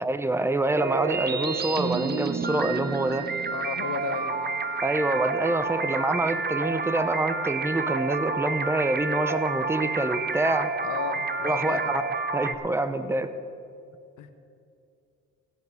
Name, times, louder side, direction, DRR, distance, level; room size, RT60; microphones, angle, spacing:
voice 1, 0.0-3.3 4.8-10.7 11.4-12.0 12.3-13.3, right 2 dB, 10° right, 10 dB, 0.8 m, -26 dB
sound 1, 0.8-12.5, right 4 dB, 35° right, 1.0 m, -29 dB
voice 2, 3.5-4.4 10.8-11.8 14.2-14.3, left 8 dB, 80° left, 8 dB, 1.2 m, -34 dB
17.0 x 5.8 x 9.0 m, 2.5 s
cardioid pair, 90°, 30 cm